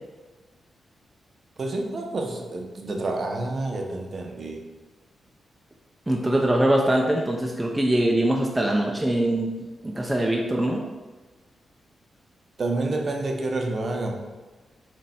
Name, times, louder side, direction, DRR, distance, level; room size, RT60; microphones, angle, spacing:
voice 1, 1.6-4.6 12.6-14.1, right 2 dB, 40° right, 2 dB, 0.8 m, -28 dB
voice 2, 6.1-9.5 9.8-10.8, right 1 dB, 10° right, -1 dB, 0.6 m, -22 dB
7.3 x 3.3 x 4.3 m, 1.3 s
wide cardioid pair, 165°, 0 cm